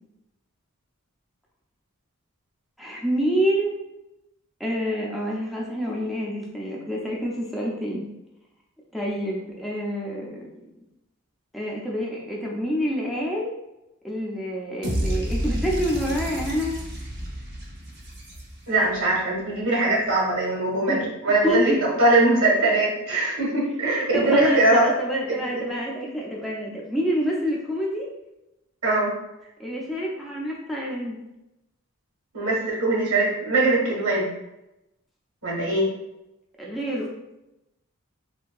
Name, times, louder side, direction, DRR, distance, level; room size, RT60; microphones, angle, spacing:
voice 1, 2.8-3.8 4.6-8.1 8.9-10.5 11.5-13.5 14.0-16.8 20.9-21.0 21.4-21.8 24.1-28.1 29.6-31.2 36.6-37.1, equal, ahead, -4 dB, 0.5 m, -27 dB
sound 1, 14.8-18.9, equal, 50° right, 0.7 m, -30 dB
voice 2, 18.7-21.0 21.2-24.9 25.3-25.7 28.8-29.1 32.3-34.3 35.4-35.9, right 2 dB, 80° right, -3 dB, 1.2 m, -21 dB
3.4 x 2.8 x 2.3 m, 0.91 s
head